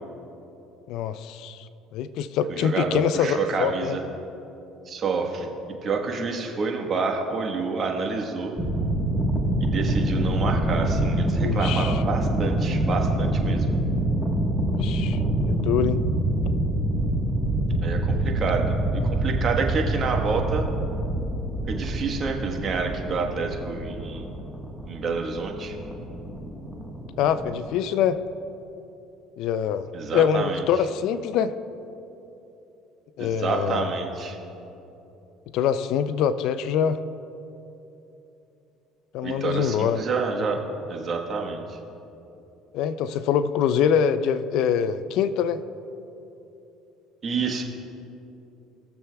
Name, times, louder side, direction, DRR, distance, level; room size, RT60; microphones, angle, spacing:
voice 1, 0.9-4.0 11.4-12.0 14.7-16.0 27.2-28.2 29.4-29.9 30.1-31.5 33.2-33.9 35.5-37.0 39.1-40.0 42.7-45.6, left 8 dB, 70° left, 13 dB, 0.4 m, -24 dB
voice 2, 2.5-4.0 4.9-5.5 5.8-8.6 9.6-13.7 17.8-20.7 21.7-24.3 24.9-25.8 29.9-30.6 33.2-34.4 39.2-40.6 40.9-41.8 47.2-47.6, right 4 dB, 45° right, 2 dB, 1.3 m, -28 dB
sound 1, 8.6-27.7, right 1 dB, 10° left, 1.3 m, -26 dB
19.0 x 6.9 x 2.3 m, 2.9 s
supercardioid pair, 95°, 0 cm